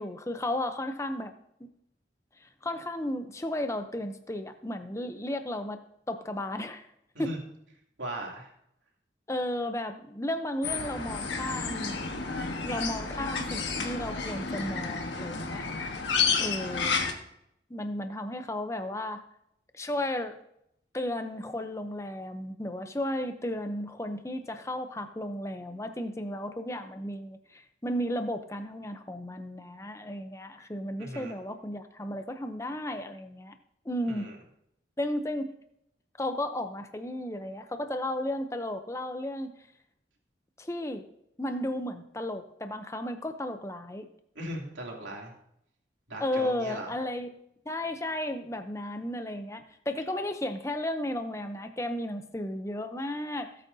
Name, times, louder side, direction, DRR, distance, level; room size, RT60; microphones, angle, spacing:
voice 1, 0.0-1.3 1.6-1.7 2.4-5.8 6.1-6.9 7.2-7.4 9.3-12.0 12.6-15.6 16.4-17.0 17.7-19.2 19.7-20.4 20.9-33.5 33.9-34.3 35.0-35.5 36.2-39.5 40.6-41.1 41.4-44.1 46.2-47.3 47.7-53.6, left 1 dB, 15° left, 7 dB, 0.7 m, -34 dB
voice 2, 8.0-8.5 31.0-31.3 34.0-34.3 44.3-45.3 46.1-46.9, right 1 dB, 80° right, -1 dB, 2.8 m, -38 dB
sound 1, 10.6-17.1, left 5 dB, 75° left, 1.4 m, -31 dB
17.5 x 8.4 x 2.8 m, 0.76 s
head